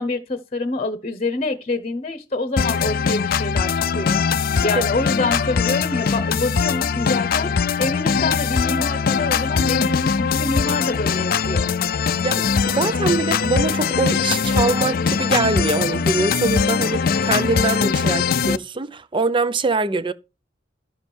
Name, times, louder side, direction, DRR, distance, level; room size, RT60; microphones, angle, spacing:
voice 1, 0.0-4.2 4.6-7.5 7.8-11.7, left 2 dB, 35° left, 1.0 m, -26 dB
sound 1, 2.6-18.6, left 6 dB, 55° left, 0.5 m, -21 dB
voice 2, 12.2-20.1, right 3 dB, 30° right, 0.6 m, -23 dB
12.5 x 7.3 x 4.4 m
head